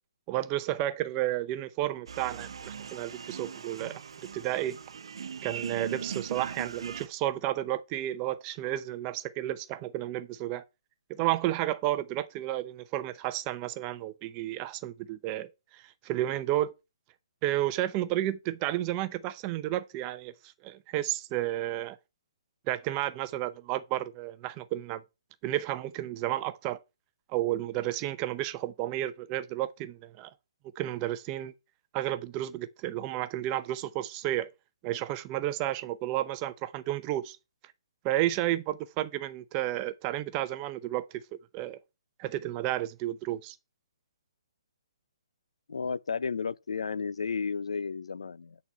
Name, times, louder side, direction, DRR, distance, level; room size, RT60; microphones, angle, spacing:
voice 1, 0.3-3.9 4.3-4.8 5.4-10.6 11.1-16.7 17.4-20.3 20.6-22.0 22.7-25.0 25.4-26.8 27.3-30.3 30.8-31.5 31.9-34.5 34.8-37.4 38.0-41.2 41.5-41.8 42.2-43.6, right 14 dB, 25° right, 0.6 m, -32 dB
sound 1, 2.1-7.1, right 6 dB, 70° right, 0.6 m, -39 dB
voice 2, 45.7-48.6, left 5 dB, 80° left, 0.4 m, -33 dB
8.1 x 4.1 x 5.5 m
hypercardioid pair, 145°, 3 cm